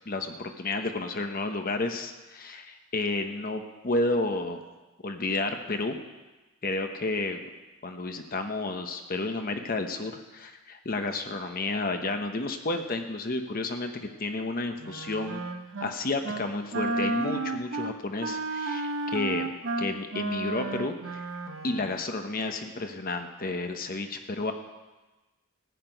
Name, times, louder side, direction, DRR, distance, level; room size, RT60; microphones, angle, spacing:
voice 1, 0.1-4.6 5.0-6.0 6.6-7.4 7.8-15.4 15.8-21.2 21.6-24.5, left 2 dB, 45° left, 6 dB, 1.0 m, -31 dB
Wind instrument woodwind instrument, 14.8-15.9 16.2-16.5 16.7-22.0, right 2 dB, 65° right, 1.0 m, -32 dB
15.0 x 6.0 x 9.2 m, 1.1 s
head